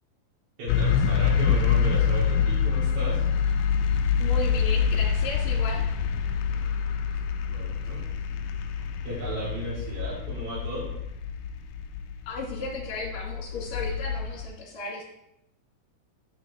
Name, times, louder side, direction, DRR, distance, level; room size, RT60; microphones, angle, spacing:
voice 1, 0.6-3.2 7.5-8.0 9.0-10.9, right 1 dB, 45° right, -6 dB, 3.5 m, -35 dB
sound 1, 0.7-14.5, left 6 dB, 80° left, 1.9 m, -26 dB
voice 2, 4.2-5.8 12.3-15.0, left 2 dB, 55° left, -1 dB, 3.1 m, -35 dB
6.9 x 6.0 x 4.2 m, 0.81 s
omnidirectional pair, 4.2 m